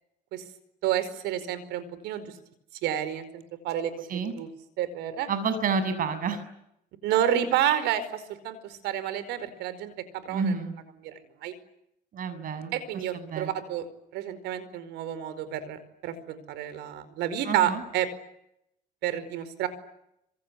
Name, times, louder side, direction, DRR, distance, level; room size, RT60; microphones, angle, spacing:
voice 1, 0.8-2.3 2.8-4.5 4.8-5.3 7.0-10.5 11.0-11.5 12.7-13.9 14.1-18.1 19.0-19.7, right 11 dB, 85° right, 14 dB, 4.8 m, -30 dB
voice 2, 5.3-6.4 10.3-10.7 12.1-12.7 13.1-13.5 17.5-17.8, right 5 dB, 55° right, 12 dB, 7.0 m, -29 dB
26.5 x 26.5 x 8.4 m, 0.79 s
cardioid pair, 110°, 17 cm